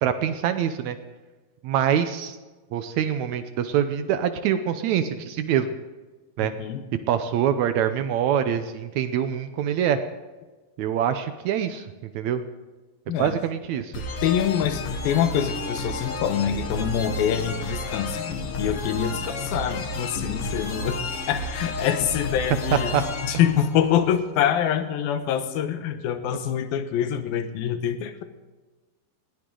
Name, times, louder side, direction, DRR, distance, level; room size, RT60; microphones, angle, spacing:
voice 1, 0.0-1.0 1.6-2.4 2.7-5.7 6.4-6.5 7.1-10.0 10.8-12.4 13.1-13.9 22.7-23.0, right 9 dB, 85° right, 9 dB, 1.6 m, -24 dB
voice 2, 6.4-6.8 13.1-13.3 14.2-18.2 18.6-21.0 21.3-28.2, left 9 dB, 75° left, 9 dB, 2.9 m, -25 dB
sound 1, 13.9-24.5, left 2 dB, 55° left, 1.8 m, -31 dB
20.0 x 16.5 x 3.8 m, 1.2 s
omnidirectional pair, 4.3 m